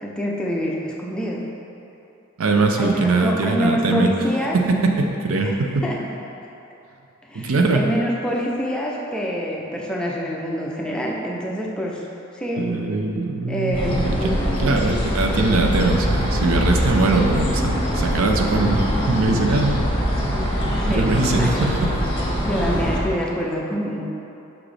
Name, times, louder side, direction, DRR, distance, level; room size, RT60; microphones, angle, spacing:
voice 1, 0.0-1.5 2.8-4.6 5.4-6.0 7.3-12.0 12.3-12.7 13.5-14.9 20.7-21.6 22.4-24.0, equal, 5° left, -3 dB, 0.5 m, -26 dB
voice 2, 2.4-4.1 4.5-5.9 7.3-7.9 12.6-19.7 20.9-21.9, right 3 dB, 75° right, 2 dB, 0.6 m, -21 dB
sound 1, 13.7-23.0, equal, 25° left, 1.1 m, -23 dB
6.0 x 6.0 x 3.3 m, 2.9 s
head